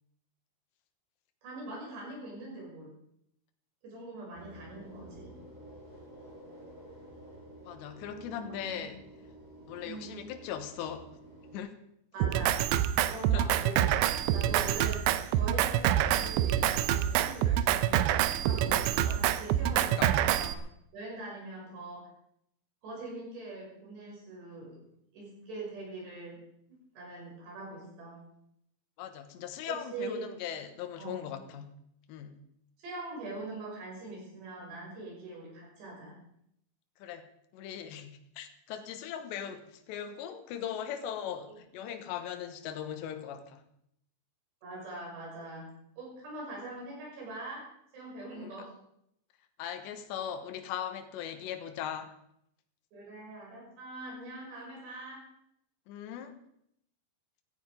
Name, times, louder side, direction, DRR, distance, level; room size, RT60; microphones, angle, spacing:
voice 1, 1.4-2.9 3.8-5.4 8.1-8.8 9.8-10.3 12.1-12.6 13.0-14.0 14.3-20.5 20.9-22.1 22.8-24.9 25.1-26.4 26.9-28.2 29.7-30.3 31.0-31.2 32.8-36.1 44.6-45.6 46.0-48.7 52.9-55.2, right 2 dB, 60° right, -3 dB, 8.5 m, -43 dB
sound 1, 4.3-11.6, right 1 dB, 20° right, 5.3 m, -51 dB
voice 2, 7.6-9.0 9.7-11.1 11.5-11.7 13.3-13.6 19.0-19.2 19.7-20.2 29.0-31.7 32.1-32.4 37.0-37.3 37.5-43.6 48.4-48.5 49.6-52.1 55.9-56.3, left 9 dB, 75° left, 7 dB, 3.3 m, -39 dB
Drum kit, 12.2-20.5, right 11 dB, 80° right, 2.6 m, -26 dB
16.0 x 14.5 x 5.2 m, 0.74 s
omnidirectional pair, 5.4 m